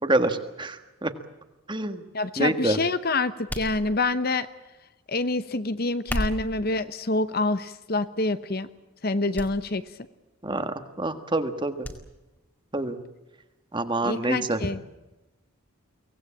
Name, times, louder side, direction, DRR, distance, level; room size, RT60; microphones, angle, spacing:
voice 1, 0.0-1.1 1.7-2.0 2.4-2.8 10.4-11.9 12.7-13.0 13.7-14.6, right 2 dB, 20° right, 9 dB, 1.6 m, -26 dB
voice 2, 2.1-4.5 5.1-8.7 9.0-9.8 14.0-14.8, left 2 dB, 45° left, 13 dB, 0.9 m, -26 dB
sound 1, 3.5-4.3 5.9-6.6 7.4-7.8 8.2-8.4 9.3-9.5 9.8-9.9 11.8-12.0 12.4-12.5, equal, 10° left, 2.1 m, -33 dB
24.0 x 18.5 x 8.7 m, 1.0 s
head